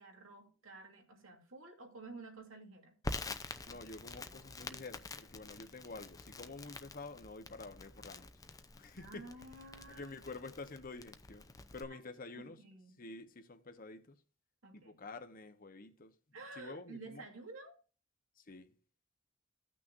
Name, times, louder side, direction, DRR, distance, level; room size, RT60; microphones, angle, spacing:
voice 1, 0.0-2.9 9.0-10.1 11.9-12.0 12.3-13.0 14.6-15.0 16.3-17.8, right 3 dB, 80° right, 2.8 m, -51 dB
Crackle, 3.0-11.8, left 3 dB, 20° left, 0.6 m, -47 dB
voice 2, 3.4-8.3 8.8-9.3 9.9-12.6 13.0-14.2 14.7-16.1 16.6-17.2 18.4-18.8, left 3 dB, 45° left, 1.0 m, -49 dB
15.5 x 6.2 x 2.6 m
head